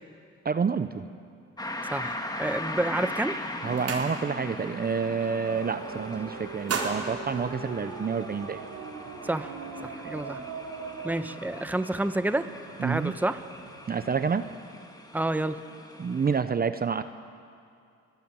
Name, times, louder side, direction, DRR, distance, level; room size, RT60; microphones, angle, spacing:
voice 1, 0.4-1.1 3.6-8.6 12.8-13.1 13.9-14.5 16.0-17.0, right 6 dB, 30° right, 11 dB, 0.8 m, -28 dB
sound 1, 1.6-16.4, left 1 dB, 15° left, 2.2 m, -40 dB
voice 2, 1.9-3.4 9.2-9.6 9.8-10.4 11.0-12.5 12.8-13.4 15.1-15.6, right 1 dB, 5° right, 10 dB, 1.0 m, -29 dB
sound 2, 2.9-3.1 3.4-4.6 4.9-5.2 5.5-6.1 6.4-8.3, right 4 dB, 50° right, 4.3 m, -35 dB
sound 3, 5.4-14.6, right 5 dB, 75° right, 4.0 m, -42 dB
25.5 x 18.0 x 9.0 m, 2.5 s
cardioid pair, 90°, 30 cm